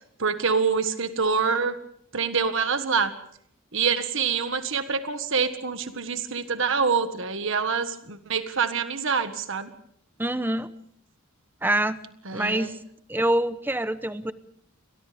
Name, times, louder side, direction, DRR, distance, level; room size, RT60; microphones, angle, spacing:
voice 1, 0.2-1.8 2.1-3.1 3.7-9.7 12.2-12.8, right 5 dB, 60° right, 9 dB, 1.6 m, -26 dB
voice 2, 10.2-10.7 11.6-12.0 12.3-12.8 13.1-14.3, right 1 dB, 10° right, 12 dB, 0.9 m, -25 dB
30.0 x 24.5 x 3.5 m, 0.67 s
head